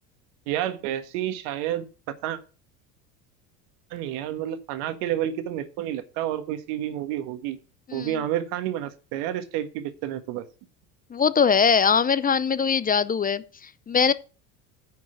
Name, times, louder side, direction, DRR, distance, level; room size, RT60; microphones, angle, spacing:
voice 1, 0.5-1.9 2.2-2.4 3.9-7.6 7.9-10.4, right 11 dB, 60° right, 1.6 m, -29 dB
voice 2, 11.1-14.1, left 6 dB, 20° left, 0.6 m, -22 dB
10.0 x 4.7 x 7.3 m
hypercardioid pair, 80°, 48 cm